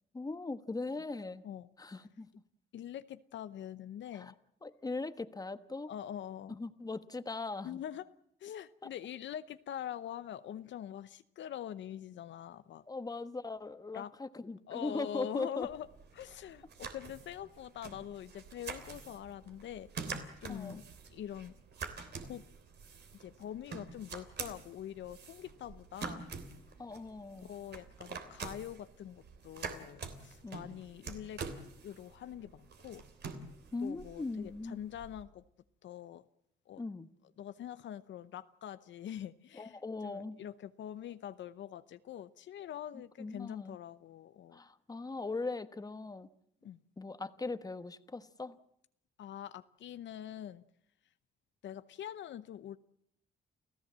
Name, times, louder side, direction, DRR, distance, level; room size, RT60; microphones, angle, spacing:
voice 1, 0.1-1.4 1.8-2.4 4.1-4.3 4.6-5.9 6.5-7.8 12.9-15.7 20.5-20.8 26.8-27.5 30.4-30.6 33.7-34.8 36.8-37.1 39.5-40.4 43.2-43.8 44.5-46.3 47.0-48.6, left 3 dB, 20° left, 1.2 m, -40 dB
voice 2, 2.7-4.3 5.9-6.6 7.6-8.1 8.4-12.8 13.9-14.1 14.7-15.9 16.1-19.9 20.4-20.8 21.1-21.5 22.2-22.4 23.2-26.2 27.4-31.5 31.8-33.0 33.8-35.4 35.8-36.3 36.7-36.8 37.4-44.6 46.6-46.8 49.2-50.6 51.6-52.8, left 10 dB, 70° left, 0.8 m, -44 dB
sound 1, 15.6-35.2, right 5 dB, 60° right, 3.2 m, -47 dB
29.5 x 15.0 x 7.5 m
cardioid pair, 90°, 20 cm